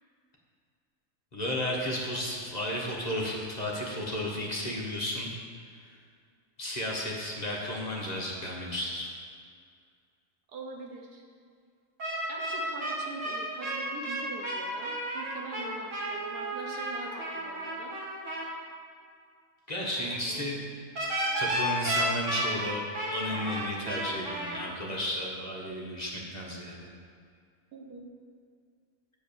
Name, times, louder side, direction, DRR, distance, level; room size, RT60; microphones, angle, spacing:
voice 1, 1.3-5.3 6.6-9.1 19.7-20.6 21.4-22.8 23.1-26.9, left 1 dB, 30° left, -3 dB, 1.3 m, -33 dB
voice 2, 10.5-11.2 12.3-18.0 19.9-20.4 27.7-28.0, right 3 dB, 90° right, 0 dB, 1.7 m, -43 dB
sound 1, 12.0-18.5 21.0-24.6, right 1 dB, 55° right, 1.9 m, -32 dB
8.4 x 5.3 x 6.8 m, 2.2 s
omnidirectional pair, 1.6 m